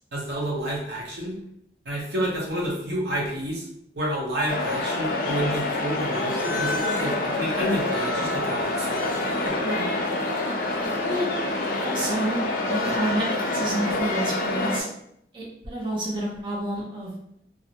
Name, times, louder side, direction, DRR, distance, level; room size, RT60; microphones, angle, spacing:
voice 1, 0.1-1.4 1.8-3.7 3.9-9.1 9.4-9.5, equal, 75° right, -3 dB, 0.8 m, -29 dB
sound 1, 4.5-14.8, left 2 dB, 50° left, 0.3 m, -26 dB
voice 2, 10.8-11.2 11.8-14.9 15.3-17.1, right 1 dB, 30° right, -5 dB, 0.6 m, -29 dB
2.4 x 2.0 x 2.8 m, 0.72 s
head